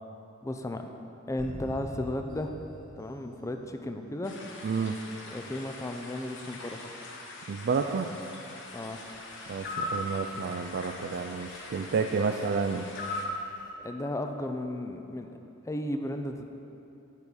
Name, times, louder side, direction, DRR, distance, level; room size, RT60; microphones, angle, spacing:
voice 1, 0.4-0.9 1.3-2.5 3.0-4.4 5.3-6.9 8.7-9.0 13.8-15.4 15.7-16.5, left 1 dB, 15° left, 6 dB, 0.5 m, -34 dB
sound 1, 1.4-4.1, equal, 80° right, 1.5 m, -44 dB
sound 2, 4.2-13.3, left 2 dB, 65° left, 1.0 m, -45 dB
voice 2, 4.6-5.0 7.5-8.1 9.5-12.9, right 5 dB, 50° right, 4 dB, 0.3 m, -30 dB
sound 3, 9.6-10.0 13.0-13.4, left 2 dB, 45° left, 1.2 m, -32 dB
8.3 x 5.3 x 6.4 m, 2.8 s
head